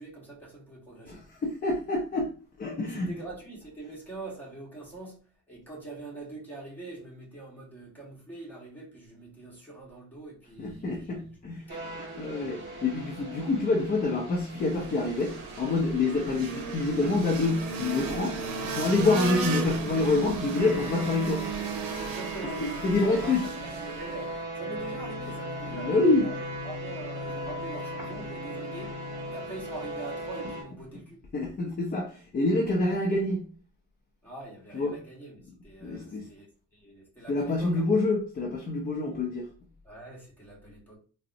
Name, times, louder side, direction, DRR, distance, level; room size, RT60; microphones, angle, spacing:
voice 1, 0.0-1.2 2.8-5.2 5.5-12.0 22.0-29.0 29.3-31.2 34.2-37.9 39.8-41.0, right 2 dB, 5° left, 1.2 m, -44 dB
voice 2, 1.1-3.1 10.6-11.6 12.2-18.4 18.6-21.5 22.6-23.4 25.7-26.3 31.3-33.4 34.7-35.0 35.8-36.3 37.3-39.5, left 3 dB, 25° left, 0.5 m, -27 dB
sound 1, 11.7-30.6, equal, 30° right, 1.4 m, -39 dB
sound 2, 14.5-24.4, right 5 dB, 90° right, 0.6 m, -35 dB
3.8 x 2.0 x 2.5 m
cardioid pair, 130°, 33 cm